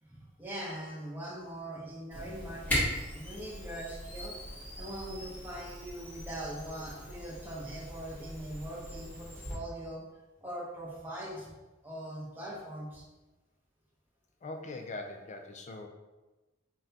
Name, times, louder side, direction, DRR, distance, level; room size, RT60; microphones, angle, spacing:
voice 1, 0.0-4.4 4.8-10.0 10.4-11.5 11.8-13.0, right 1 dB, 10° right, -5 dB, 0.9 m, -41 dB
Camera, 2.1-9.5, equal, 10° left, 1.5 m, -39 dB
voice 2, 14.4-15.9, left 2 dB, 35° left, 4 dB, 0.4 m, -41 dB
5.9 x 2.2 x 2.8 m, 1.1 s
head